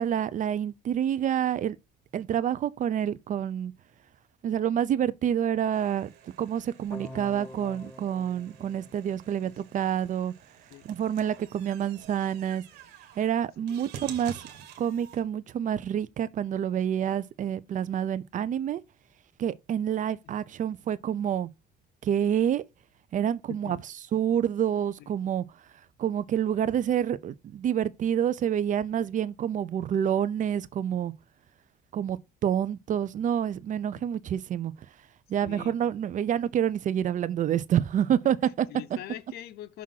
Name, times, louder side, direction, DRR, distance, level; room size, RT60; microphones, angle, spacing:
voice 1, 0.0-1.8 2.1-3.7 4.4-6.1 6.4-10.3 10.8-12.6 13.2-14.5 14.8-18.8 19.4-21.5 22.0-22.6 23.1-23.8 24.1-25.4 26.0-31.1 31.9-34.7 35.3-38.7, right 9 dB, 50° right, 0.6 m, -28 dB
sound 1, 5.7-15.2, right 9 dB, 80° right, 1.6 m, -49 dB
sound 2, 6.9-9.9, left 1 dB, 10° left, 0.8 m, -46 dB
voice 2, 23.5-23.8 25.0-25.1 33.9-34.1 35.4-35.8 38.4-39.8, left 12 dB, 70° left, 0.7 m, -43 dB
6.2 x 3.6 x 5.7 m
cardioid pair, 110°, 17 cm